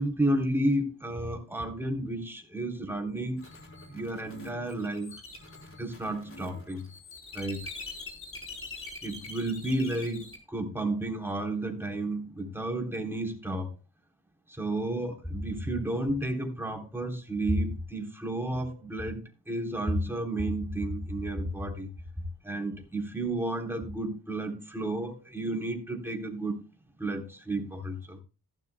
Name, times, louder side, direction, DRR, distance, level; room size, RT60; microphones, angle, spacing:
voice 1, 0.0-3.4 3.9-5.1 5.8-6.9 7.3-7.6 9.0-13.7 14.5-21.9 22.4-26.7 27.0-28.2, right 1 dB, 5° right, 1 dB, 3.6 m, -32 dB
sound 1, 3.4-10.4, left 3 dB, 35° left, 4.2 m, -44 dB
15.0 x 12.0 x 2.3 m, 0.32 s
cardioid pair, 70°, 38 cm